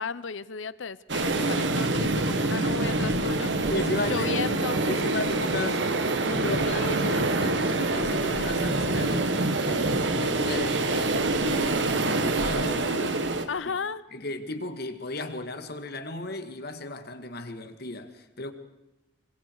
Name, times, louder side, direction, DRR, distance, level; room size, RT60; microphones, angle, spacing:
voice 1, 0.0-3.5 4.1-4.8 6.7-7.3 13.5-14.0, left 5 dB, 85° left, 0.7 m, -33 dB
sound 1, 1.1-13.5, right 2 dB, 70° right, 1.6 m, -26 dB
Thunderstorm / Rain, 1.2-13.5, right 1 dB, 55° right, 1.8 m, -35 dB
voice 2, 2.5-4.3 4.8-5.8 6.2-13.4 14.1-18.5, left 2 dB, 55° left, 2.0 m, -35 dB
26.0 x 25.5 x 4.8 m
head